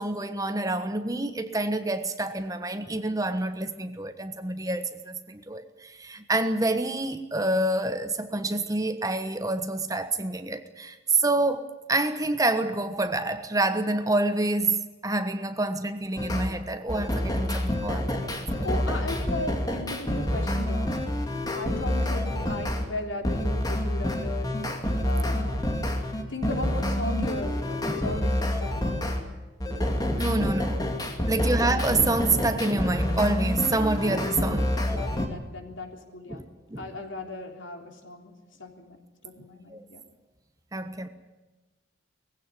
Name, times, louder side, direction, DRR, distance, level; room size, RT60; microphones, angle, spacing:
voice 1, 0.0-18.7 27.9-28.1 29.7-30.8 31.3-35.1 36.3-36.4 36.7-36.8 39.7-39.8 40.7-41.1, right 2 dB, 20° right, 1.2 m, -27 dB
sound 1, 16.2-16.5 16.9-22.8 23.2-29.2 29.6-35.3, left 1 dB, 20° left, 2.4 m, -28 dB
voice 2, 18.6-21.0 21.5-24.5 25.0-25.6 26.3-29.1 31.2-31.5 34.9-36.4 36.8-38.3 38.6-39.0 39.2-40.0, left 2 dB, 80° left, 3.5 m, -36 dB
20.5 x 16.0 x 9.8 m
head